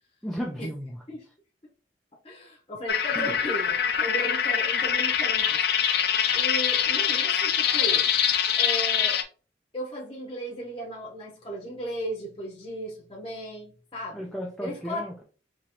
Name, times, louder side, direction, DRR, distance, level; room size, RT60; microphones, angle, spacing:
voice 1, 0.2-1.0 3.1-3.4 14.1-15.2, equal, ahead, -1 dB, 0.4 m, -34 dB
voice 2, 2.2-5.6 6.3-8.1 8.5-9.2 9.7-14.3 14.6-15.1, equal, 30° left, -3 dB, 0.8 m, -36 dB
sound 1, 2.9-9.2, left 8 dB, 60° left, 0.4 m, -24 dB
4.2 x 3.1 x 2.7 m, 0.38 s
head